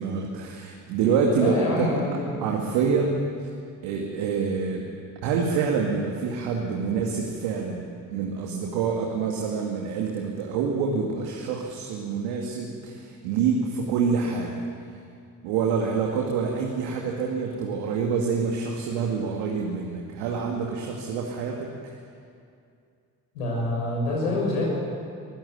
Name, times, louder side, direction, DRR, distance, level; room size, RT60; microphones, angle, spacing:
voice 1, 0.0-1.9 2.4-3.5 3.8-4.9 5.2-14.6 15.4-21.9, right 5 dB, 70° right, 0 dB, 2.4 m, -27 dB
voice 2, 1.3-2.4 23.3-24.7, left 2 dB, 80° left, -2 dB, 6.7 m, -26 dB
24.5 x 15.0 x 9.7 m, 2.4 s
figure-of-eight pair, 45°, 43 cm